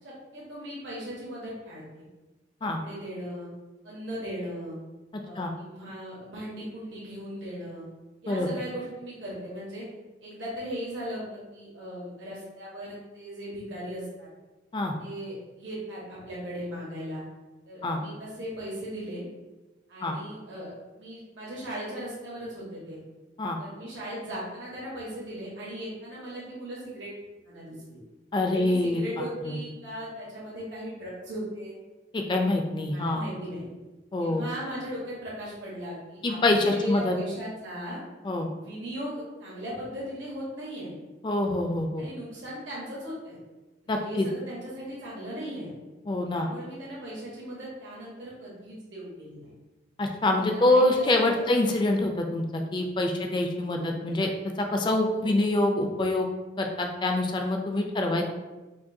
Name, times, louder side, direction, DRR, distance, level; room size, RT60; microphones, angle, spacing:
voice 1, 0.0-2.0 2.6-3.5 3.8-4.8 5.2-7.8 8.2-9.9 10.2-14.3 15.0-17.2 17.7-19.2 19.9-23.0 23.6-27.1 27.4-28.0 28.4-31.7 32.9-33.6 34.2-38.0 38.6-40.9 42.0-43.4 43.8-45.7 46.3-49.5 50.4-51.5 53.1-53.4 53.6-53.9 55.0-55.4 57.9-58.2, equal, 80° right, -6 dB, 1.1 m, -38 dB
voice 2, 28.3-29.0 29.4-29.6 32.1-33.2 34.1-34.4 36.2-37.2 38.2-38.5 41.2-42.0 43.9-44.3 46.1-46.5 50.0-52.4 52.7-54.3 54.6-56.3 56.6-58.2, left 2 dB, 25° left, 3 dB, 0.3 m, -25 dB
5.0 x 2.2 x 2.7 m, 1.1 s
head